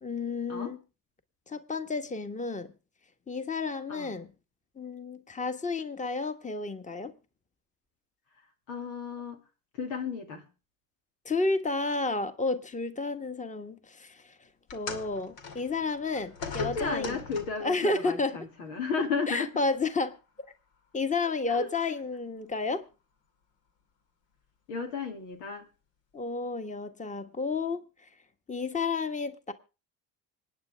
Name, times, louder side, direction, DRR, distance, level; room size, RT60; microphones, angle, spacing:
voice 1, 0.0-0.8 1.5-2.7 3.3-4.3 4.8-7.1 11.2-14.3 14.7-17.2 17.6-18.4 19.3-20.2 20.9-22.8 26.1-27.8 28.5-29.5, left 3 dB, 15° left, 1.4 m, -31 dB
voice 2, 8.7-9.4 9.8-10.5 16.5-19.5 21.5-21.7 24.7-25.7, left 4 dB, 85° left, 2.3 m, -33 dB
sound 1, 14.7-17.7 18.7-18.9 19.8-19.9, left 5 dB, 70° left, 2.4 m, -40 dB
26.0 x 9.1 x 3.4 m
hypercardioid pair, 65°, 43 cm